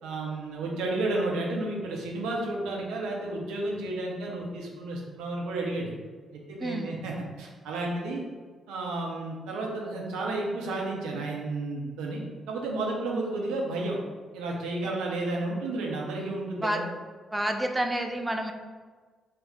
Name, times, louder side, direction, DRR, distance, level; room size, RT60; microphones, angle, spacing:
voice 1, 0.0-5.9 6.3-8.2 8.7-12.2 12.5-14.0 14.3-16.9, right 2 dB, 65° right, -2 dB, 0.5 m, -32 dB
voice 2, 6.6-6.9 16.6-16.8 17.3-18.5, right 1 dB, 15° right, 4 dB, 0.4 m, -29 dB
2.5 x 2.1 x 3.9 m, 1.5 s
figure-of-eight pair, 40°, 0 cm